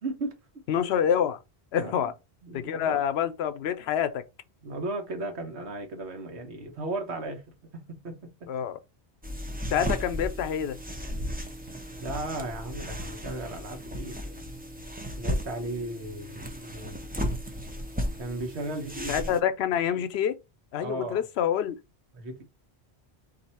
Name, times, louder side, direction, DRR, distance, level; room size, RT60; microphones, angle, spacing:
voice 1, 0.0-0.4 1.8-2.1 2.4-3.0 4.6-7.4 7.7-8.5 12.0-14.6 15.1-16.9 18.2-19.3 20.8-21.2 22.1-22.4, right 2 dB, 85° right, 1.4 m, -36 dB
voice 2, 0.7-1.4 1.7-2.1 2.5-4.2 8.5-8.8 9.7-10.8 19.1-20.4 20.7-21.8, left 9 dB, 75° left, 0.8 m, -27 dB
sound 1, 9.2-19.4, equal, 10° right, 0.5 m, -35 dB
4.0 x 2.7 x 4.1 m
omnidirectional pair, 1.1 m